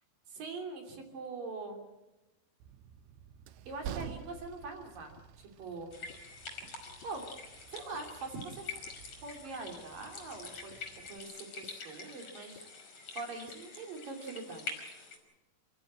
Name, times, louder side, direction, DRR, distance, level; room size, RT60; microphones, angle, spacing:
voice 1, 0.3-1.8 3.7-5.9 7.0-7.3 7.7-8.8 9.2-12.7 13.2-14.7, right 3 dB, 45° right, 3 dB, 4.2 m, -43 dB
Train, 2.6-11.2, right 9 dB, 75° right, 2.9 m, -49 dB
sound 1, 5.2-5.3 6.1-6.2 7.0-7.1 7.9-8.0 8.9-9.0 9.8-9.9 10.7-10.8 11.6-11.7 12.5-12.6 13.5-13.6, left 10 dB, 80° left, 4.1 m, -55 dB
sound 2, 5.9-15.2, left 4 dB, 30° left, 6.1 m, -46 dB
28.5 x 15.0 x 8.8 m, 1.0 s
omnidirectional pair, 5.9 m